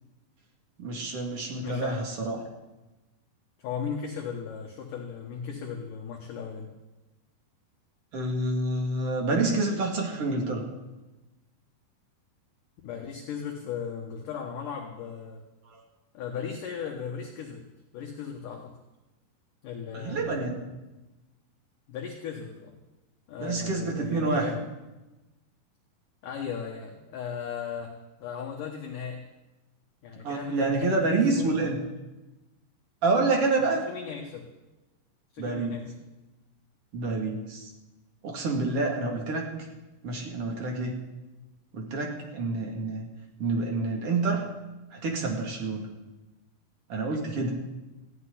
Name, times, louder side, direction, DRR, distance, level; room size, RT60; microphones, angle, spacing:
voice 1, 0.8-2.4 8.1-10.6 19.9-20.6 23.4-24.5 30.2-31.8 33.0-33.9 35.4-35.8 36.9-37.7 38.2-39.5 40.0-41.0 41.7-43.0 43.4-44.4 44.9-45.8 46.9-47.6, right 3 dB, 40° right, 0 dB, 2.3 m, -28 dB
voice 2, 1.6-2.0 3.6-6.7 12.8-15.4 16.1-17.6 17.9-18.7 19.6-20.6 21.9-22.8 23.3-24.6 26.2-27.9 28.2-29.2 30.0-31.6 33.8-34.4 35.3-35.9, left 7 dB, 65° left, 1 dB, 2.2 m, -36 dB
15.0 x 8.0 x 9.9 m, 1.1 s
omnidirectional pair, 5.1 m